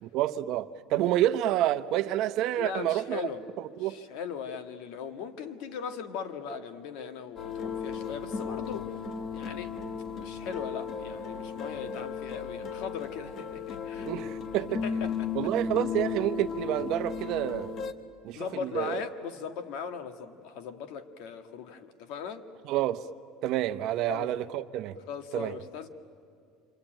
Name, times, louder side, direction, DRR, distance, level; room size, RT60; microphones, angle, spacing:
voice 1, 0.0-3.3 3.6-4.0 14.0-14.8 15.3-17.7 18.2-18.5 18.7-19.0 22.7-23.1 23.4-25.0 25.3-25.6, right 13 dB, 55° right, 0.8 m, -28 dB
voice 2, 2.6-3.5 3.8-8.9 9.3-9.7 10.1-14.1 14.5-15.3 18.3-22.4 24.1-24.3 25.1-25.9, left 6 dB, 65° left, 1.7 m, -39 dB
sound 1, 7.4-17.9, left 5 dB, 35° left, 1.4 m, -35 dB
27.0 x 24.5 x 9.0 m
cardioid pair, 155°, 0 cm